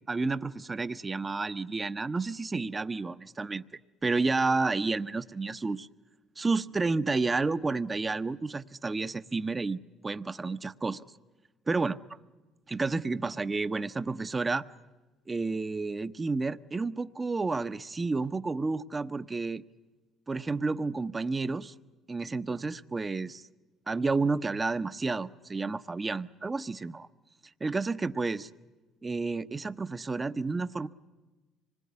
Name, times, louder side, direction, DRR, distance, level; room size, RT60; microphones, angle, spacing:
voice 1, 0.1-3.6 4.0-5.9 6.4-11.0 11.7-12.0 12.7-14.6 15.3-19.6 20.3-21.7 22.1-23.5 23.9-27.1 27.6-28.5 29.0-30.9, right 3 dB, 25° right, 12 dB, 0.8 m, -30 dB
25.5 x 20.5 x 9.6 m, 1.2 s
supercardioid pair, 75°, 0 cm